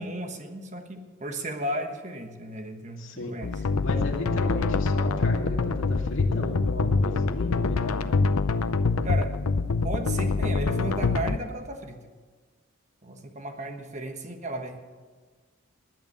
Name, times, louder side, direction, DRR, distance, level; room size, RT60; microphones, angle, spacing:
voice 1, 0.0-3.5 9.0-9.3 9.8-12.0 13.0-14.8, right 1 dB, 35° right, 6 dB, 1.3 m, -34 dB
voice 2, 3.0-8.2, left 1 dB, 65° left, 0 dB, 2.4 m, -35 dB
sound 1, 3.4-11.4, left 3 dB, 90° left, 0.7 m, -25 dB
19.5 x 9.3 x 6.8 m, 1.4 s
head